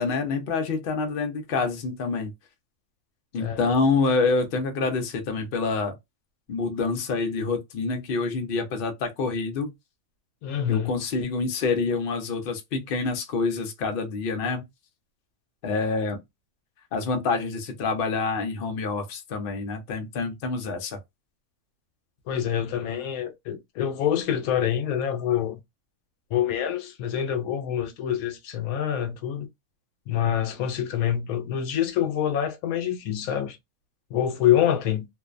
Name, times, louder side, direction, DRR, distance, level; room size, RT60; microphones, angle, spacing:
voice 1, 0.0-2.3 3.3-6.0 6.5-9.7 10.7-14.7 15.6-16.2 16.9-21.0, left 4 dB, 55° left, 0.7 m, -27 dB
voice 2, 10.4-11.0 22.3-25.6 26.3-29.5 30.1-33.6 34.1-35.1, left 10 dB, 85° left, 1.0 m, -26 dB
2.5 x 2.1 x 2.4 m
omnidirectional pair, 1.5 m